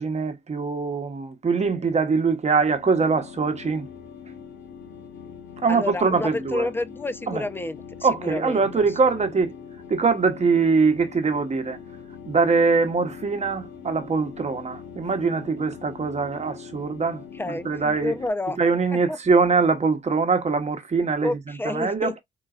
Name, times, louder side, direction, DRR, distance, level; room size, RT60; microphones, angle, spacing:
voice 1, 0.0-3.9 5.6-6.7 7.3-7.4 8.0-9.5 9.9-11.8 12.3-18.1 18.6-22.1, right 4 dB, 35° right, 1.2 m, -23 dB
sound 1, 2.5-18.3, left 7 dB, 65° left, 2.2 m, -42 dB
voice 2, 5.7-8.6 17.4-18.6 18.9-19.2 21.2-22.1, left 2 dB, 10° left, 0.6 m, -29 dB
4.0 x 3.7 x 2.4 m
cardioid pair, 90°, 20 cm